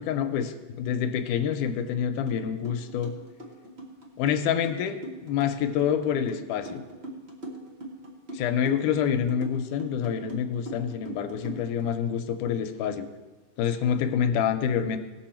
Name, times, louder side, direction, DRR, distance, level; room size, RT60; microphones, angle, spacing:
voice 1, 0.0-3.1 4.2-6.8 8.3-13.1 13.6-15.0, left 8 dB, 80° left, 8 dB, 2.1 m, -27 dB
sound 1, 2.3-2.4 2.6-11.9, right 1 dB, 55° right, 0.6 m, -40 dB
18.0 x 6.9 x 4.4 m, 1.2 s
omnidirectional pair, 3.8 m